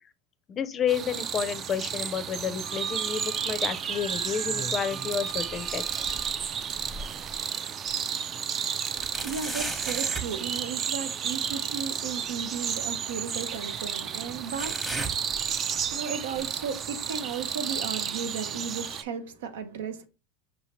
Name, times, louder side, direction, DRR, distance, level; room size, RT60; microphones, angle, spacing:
voice 1, 0.5-6.0, left 7 dB, 30° left, 0.5 m, -30 dB
sound 1, 0.9-19.0, right 8 dB, 35° right, 0.3 m, -32 dB
Wind instrument woodwind instrument, 2.6-6.4, right 5 dB, 55° right, 1.1 m, -44 dB
sound 2, 4.4-5.1 5.5-7.4 7.9-8.0 9.0-10.4 12.1-12.2 13.1-13.2 14.5-15.9 16.3-16.6 17.3-17.4 18.3-18.4, right 2 dB, 10° right, 0.9 m, -37 dB
voice 2, 9.0-20.1, right 6 dB, 90° right, 0.7 m, -35 dB
5.4 x 2.8 x 3.0 m
supercardioid pair, 125°, 0 cm